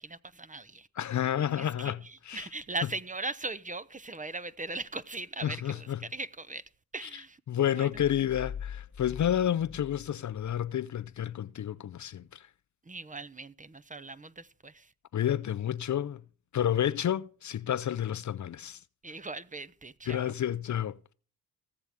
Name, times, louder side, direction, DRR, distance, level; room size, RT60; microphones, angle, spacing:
voice 1, 0.0-0.9 1.5-7.4 7.7-8.0 12.9-14.9 19.0-20.3, right 3 dB, 20° right, 0.7 m, -39 dB
voice 2, 1.0-2.5 5.4-6.0 7.0-7.2 7.5-12.5 15.1-16.2 16.5-18.8 20.1-21.1, left 10 dB, 50° left, 0.5 m, -30 dB
sound 1, 8.3-10.7, left 8 dB, 30° left, 0.9 m, -43 dB
18.0 x 7.1 x 3.5 m
supercardioid pair, 50°, 38 cm